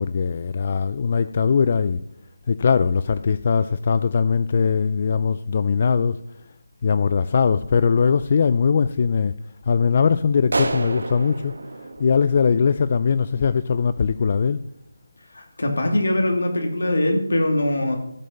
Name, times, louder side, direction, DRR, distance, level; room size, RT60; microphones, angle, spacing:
voice 1, 0.0-2.0 2.5-6.2 6.8-9.4 9.7-11.5 12.0-14.6, left 6 dB, 30° left, 14 dB, 0.3 m, -20 dB
sound 1, 10.5-13.1, right 3 dB, 70° right, 1.6 m, -29 dB
voice 2, 15.3-18.0, left 1 dB, 80° left, 2 dB, 2.6 m, -22 dB
15.0 x 5.3 x 5.8 m, 0.80 s
figure-of-eight pair, 175°, 0 cm